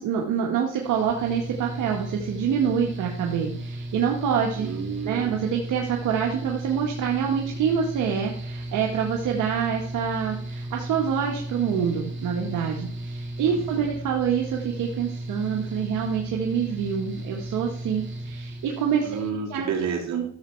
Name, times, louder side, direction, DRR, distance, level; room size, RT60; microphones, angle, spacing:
voice 1, 0.0-4.7 5.0-19.2 19.5-19.7 20.1-20.2, right 7 dB, 80° right, 0 dB, 1.6 m, -26 dB
Mechanical fan, 0.8-19.3, right 1 dB, 40° right, 2.5 m, -35 dB
voice 2, 4.6-5.4 13.5-13.9 19.0-20.2, right 6 dB, 65° right, 0 dB, 3.6 m, -31 dB
13.5 x 7.3 x 4.6 m, 0.64 s
cardioid pair, 90°, 30 cm